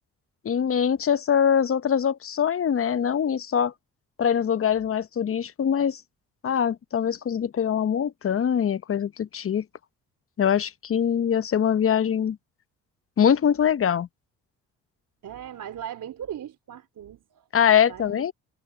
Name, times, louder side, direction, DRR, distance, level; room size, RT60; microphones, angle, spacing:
voice 1, 0.4-3.7 4.2-6.0 6.4-9.6 10.4-12.4 13.2-14.1 17.5-18.3, left 8 dB, 40° left, 0.8 m, -23 dB
voice 2, 15.2-17.5 17.8-18.2, right 10 dB, 60° right, 3.7 m, -38 dB
supercardioid pair, 60°, 34 cm